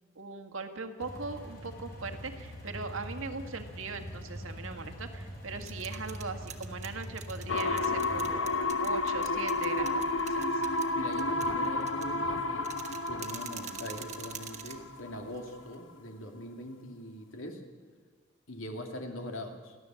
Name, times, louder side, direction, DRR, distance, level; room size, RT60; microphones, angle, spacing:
voice 1, 0.2-10.6, right 4 dB, 90° right, 6 dB, 1.9 m, -40 dB
sound 1, 1.0-8.3, equal, 50° left, 5.4 m, -43 dB
sound 2, 5.4-15.8, right 8 dB, 35° right, 1.3 m, -47 dB
sound 3, 7.5-15.2 15.5-15.6, left 2 dB, 70° left, 1.4 m, -31 dB
voice 2, 10.9-17.6 18.5-19.8, left 1 dB, 85° left, 4 dB, 2.6 m, -42 dB
29.5 x 11.5 x 7.7 m, 1.5 s
head